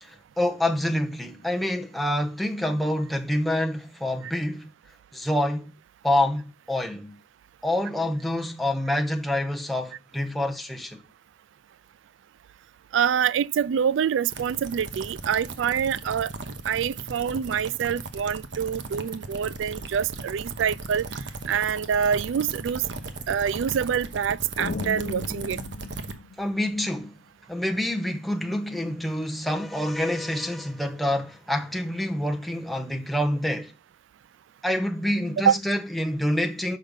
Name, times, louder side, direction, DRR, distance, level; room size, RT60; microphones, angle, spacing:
voice 1, 0.0-4.7 5.1-5.7 6.0-7.2 7.6-11.0 26.4-27.2 27.5-33.7 34.6-36.8, left 1 dB, ahead, 0.9 m, -27 dB
voice 2, 12.9-16.3 16.6-21.1 21.5-22.9 23.3-25.6 35.4-35.6, right 8 dB, 85° right, 0.3 m, -25 dB
sound 1, 14.3-26.1, right 3 dB, 65° right, 0.9 m, -37 dB
sound 2, 24.6-27.0, left 3 dB, 80° left, 0.7 m, -36 dB
6.4 x 5.1 x 5.3 m
head